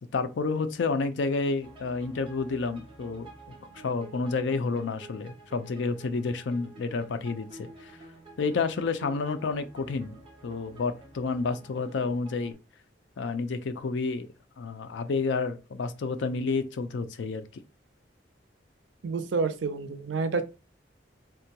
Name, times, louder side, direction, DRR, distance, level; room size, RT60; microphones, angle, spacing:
voice 1, 0.1-3.3 3.7-7.9 8.4-10.2 10.4-12.6 13.2-14.3 14.6-17.5, left 4 dB, 80° left, 0.4 m, -30 dB
sound 1, 1.6-12.5, right 2 dB, 30° right, 0.7 m, -50 dB
voice 2, 19.0-20.4, right 4 dB, 85° right, 0.4 m, -28 dB
3.6 x 2.2 x 2.8 m
head